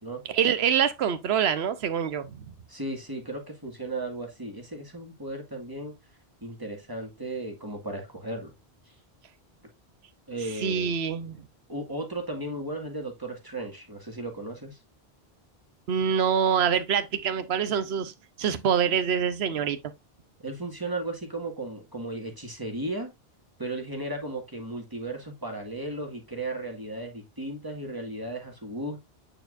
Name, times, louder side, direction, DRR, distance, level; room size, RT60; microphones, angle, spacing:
voice 1, 0.2-2.5 10.5-11.4 15.9-18.1 18.4-19.8, right 7 dB, 90° right, 1.0 m, -25 dB
voice 2, 2.7-5.9 6.4-8.5 10.3-10.9 11.7-14.8 20.4-23.1 23.6-29.0, right 2 dB, 20° right, 1.9 m, -35 dB
8.8 x 4.5 x 2.5 m
omnidirectional pair, 1.1 m